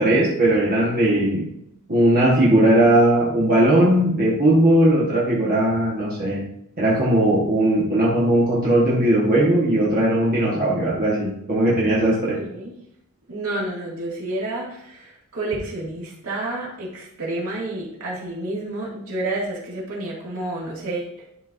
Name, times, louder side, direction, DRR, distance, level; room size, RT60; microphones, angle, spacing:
voice 1, 0.0-1.5 1.9-6.4 6.8-12.4, right 1 dB, 40° right, -6 dB, 1.5 m, -18 dB
voice 2, 12.0-12.7 13.3-21.3, right 2 dB, 70° right, -5 dB, 2.4 m, -30 dB
11.0 x 4.4 x 2.7 m, 0.74 s
head